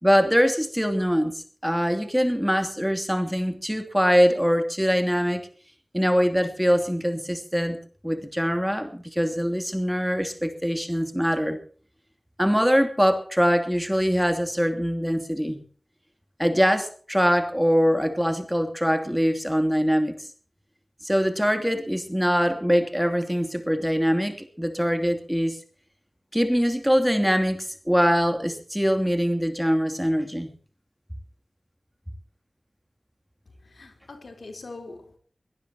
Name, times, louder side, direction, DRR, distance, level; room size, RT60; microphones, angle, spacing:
voice 1, 0.0-5.5 5.9-7.8 8.0-11.6 12.4-15.6 16.4-20.3 21.0-25.6 26.3-30.5, equal, ahead, 7 dB, 2.9 m, -23 dB
voice 2, 33.6-35.2, left 3 dB, 90° left, 6 dB, 3.9 m, -42 dB
23.5 x 18.0 x 2.9 m, 0.43 s
wide cardioid pair, 75°, 0 cm